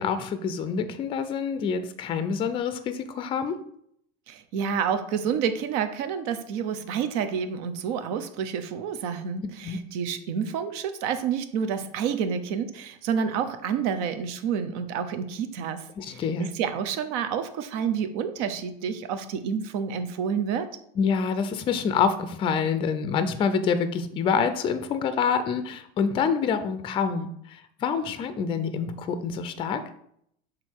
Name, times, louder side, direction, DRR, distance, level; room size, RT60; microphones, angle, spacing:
voice 1, 0.0-3.6 9.6-9.8 16.0-16.5 21.0-29.8, left 6 dB, 25° left, 11 dB, 0.4 m, -27 dB
voice 2, 4.3-20.7, right 7 dB, 70° right, 9 dB, 0.8 m, -29 dB
6.5 x 3.7 x 4.5 m, 0.71 s
cardioid pair, 160°, 21 cm